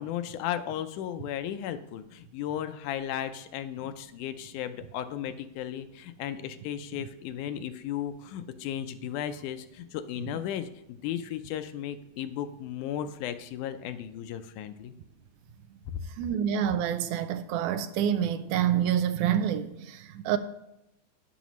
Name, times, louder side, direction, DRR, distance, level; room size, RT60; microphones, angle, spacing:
voice 1, 0.0-14.9 15.9-16.1, left 10 dB, 80° left, 2.1 m, -35 dB
voice 2, 16.2-20.4, right 9 dB, 80° right, 2.0 m, -27 dB
11.0 x 10.0 x 3.1 m
omnidirectional pair, 3.7 m